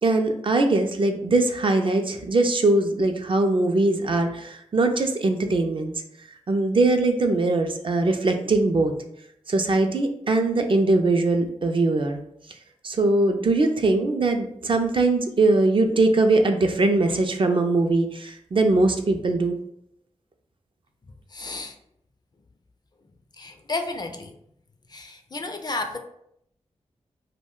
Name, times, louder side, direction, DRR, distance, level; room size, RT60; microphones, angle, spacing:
voice 1, 0.0-5.9 6.5-8.9 9.5-12.2 12.8-19.6, right 2 dB, 45° right, 5 dB, 0.4 m, -21 dB
voice 2, 21.3-21.7 23.4-24.3 24.9-26.0, left 3 dB, 35° left, 5 dB, 0.4 m, -32 dB
2.3 x 2.1 x 3.6 m, 0.73 s
wide cardioid pair, 75°, 12 cm